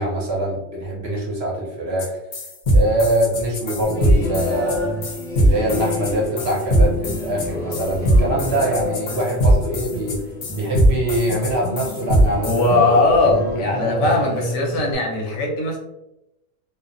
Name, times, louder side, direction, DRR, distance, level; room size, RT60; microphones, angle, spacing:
voice 1, 0.0-2.2 2.7-4.9 5.4-10.2 10.5-12.7 13.3-13.4, right 1 dB, 60° right, -2 dB, 0.8 m, -23 dB
sound 1, 2.0-2.1 2.3-12.6, right 1 dB, 60° left, 0.8 m, -19 dB
sound 2, 3.8-14.9, left 2 dB, 5° left, 0.4 m, -29 dB
voice 2, 12.4-15.8, left 2 dB, 80° left, -1 dB, 1.1 m, -19 dB
2.7 x 2.0 x 2.5 m, 0.89 s
omnidirectional pair, 1.4 m